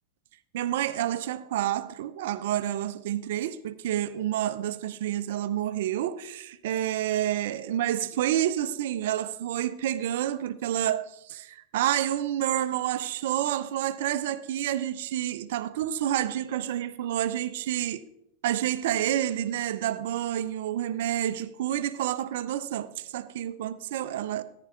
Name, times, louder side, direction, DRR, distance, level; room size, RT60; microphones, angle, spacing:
voice 1, 0.5-18.0 18.4-24.4, right 12 dB, 55° right, 0.5 m, -29 dB
14.0 x 10.0 x 3.3 m
figure-of-eight pair, 90°, 0 cm